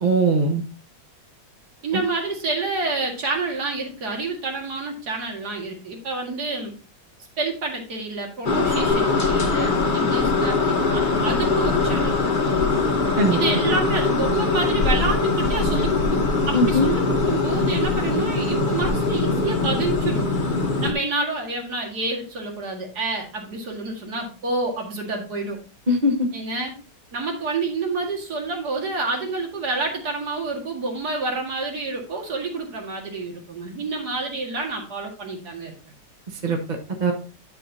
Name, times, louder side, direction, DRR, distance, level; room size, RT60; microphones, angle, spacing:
voice 1, 0.0-0.6 13.2-13.4 16.5-16.9 25.9-26.1 36.4-36.6 37.0-37.1, right 1 dB, 30° right, 3 dB, 1.0 m, -19 dB
voice 2, 1.8-6.7 7.4-12.2 13.3-20.3 20.8-25.6 26.3-26.7 27.1-35.7, right 3 dB, 60° right, 1 dB, 2.6 m, -28 dB
sound 1, 8.4-20.9, left 3 dB, 35° left, 1.0 m, -22 dB
10.5 x 6.2 x 2.7 m, 0.35 s
omnidirectional pair, 1.9 m